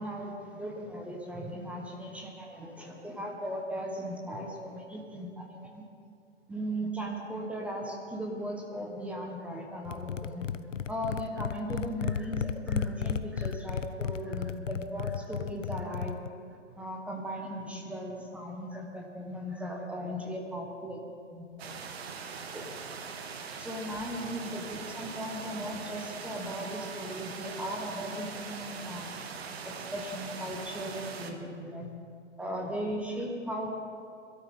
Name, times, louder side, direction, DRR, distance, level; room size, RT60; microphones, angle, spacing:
voice 1, 0.0-5.8 6.5-10.5 10.9-16.2 16.8-21.0 21.3-21.7 22.5-22.6 23.6-29.1 29.6-31.9 32.4-33.7, equal, 5° right, 0 dB, 1.4 m, -37 dB
sound 1, 9.9-16.3, left 7 dB, 80° left, 0.7 m, -34 dB
sound 2, 21.6-31.3, right 5 dB, 55° right, 1.5 m, -41 dB
22.0 x 13.0 x 3.8 m, 2.4 s
figure-of-eight pair, 125°, 37 cm